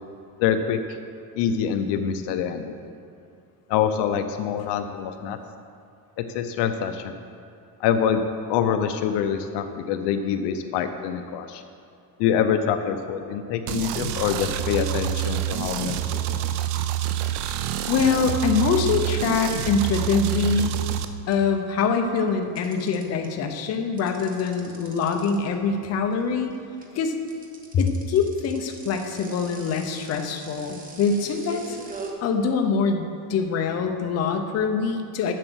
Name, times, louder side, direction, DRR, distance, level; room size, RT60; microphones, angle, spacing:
voice 1, 0.4-0.8 1.4-2.9 3.7-5.4 6.2-7.2 7.8-8.2 8.5-11.6 12.2-16.4, left 8 dB, 70° left, 8 dB, 0.7 m, -25 dB
sound 1, 13.7-21.1, right 11 dB, 65° right, 0.6 m, -27 dB
sound 2, 14.7-15.6 16.3-21.7 22.0-32.1, right 3 dB, 20° right, 1.0 m, -44 dB
voice 2, 17.9-20.8 21.3-26.5 26.9-27.1 27.7-31.8 32.2-35.3, left 5 dB, 35° left, 4 dB, 0.7 m, -24 dB
7.8 x 7.5 x 6.3 m, 2.4 s
cardioid pair, 155°, 44 cm